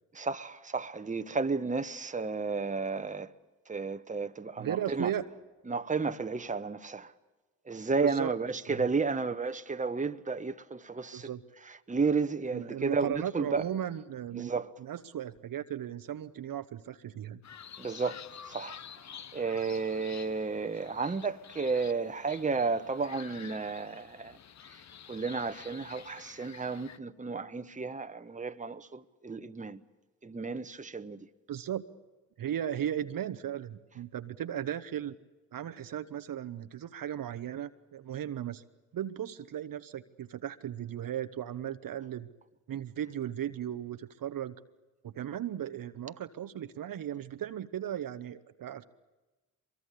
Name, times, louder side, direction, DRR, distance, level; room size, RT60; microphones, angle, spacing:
voice 1, 0.1-3.3 3.7-5.1 5.7-7.1 7.7-11.3 11.9-13.6 14.3-14.7 17.8-18.8 19.1-24.4 25.1-29.8 30.2-31.3, right 4 dB, 20° right, 1.2 m, -32 dB
voice 2, 4.6-5.2 8.0-8.3 8.7-8.9 11.1-11.4 12.5-14.5 14.8-17.4 31.5-31.8 32.4-35.2 35.5-38.6 38.9-42.3 42.7-44.5 45.0-48.8, right 10 dB, 55° right, 1.1 m, -36 dB
sound 1, 17.4-27.0, left 8 dB, 45° left, 0.9 m, -49 dB
23.0 x 23.0 x 8.4 m
hypercardioid pair, 50°, 40 cm